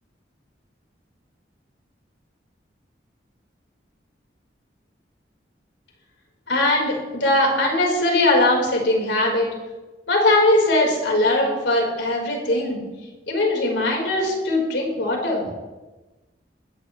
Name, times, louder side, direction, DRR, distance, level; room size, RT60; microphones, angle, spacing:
voice 1, 6.5-9.5 10.1-12.8 13.3-15.4, left 1 dB, 85° left, -1 dB, 4.7 m, -20 dB
20.0 x 14.0 x 3.3 m, 1.1 s
head